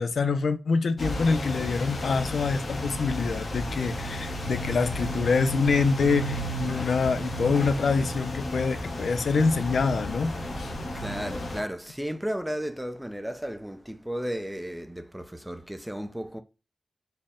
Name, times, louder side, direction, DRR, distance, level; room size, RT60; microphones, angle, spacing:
voice 1, 0.0-10.8, left 4 dB, 75° left, 0.4 m, -26 dB
sound 1, 1.0-11.6, equal, 55° left, 0.8 m, -33 dB
voice 2, 10.9-16.4, equal, 5° right, 0.5 m, -34 dB
4.2 x 2.1 x 3.6 m
wide cardioid pair, 120°, 0 cm